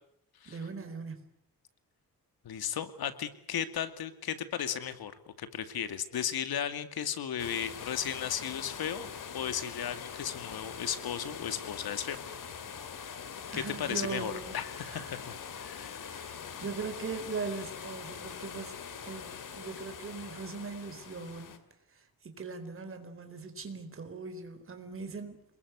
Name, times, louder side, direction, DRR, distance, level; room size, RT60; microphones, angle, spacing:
voice 1, 0.4-1.2 13.5-14.5 14.8-15.2 16.1-21.6 21.9-25.4, right 4 dB, 35° right, 7 dB, 4.1 m, -40 dB
voice 2, 2.4-5.1 5.4-9.1 9.3-12.2 13.1-13.2 13.5-16.1, left 9 dB, 85° left, 11 dB, 2.4 m, -35 dB
sound 1, 7.4-21.6, left 7 dB, 60° left, 2.8 m, -43 dB
28.0 x 21.5 x 8.2 m, 0.72 s
wide cardioid pair, 165°, 36 cm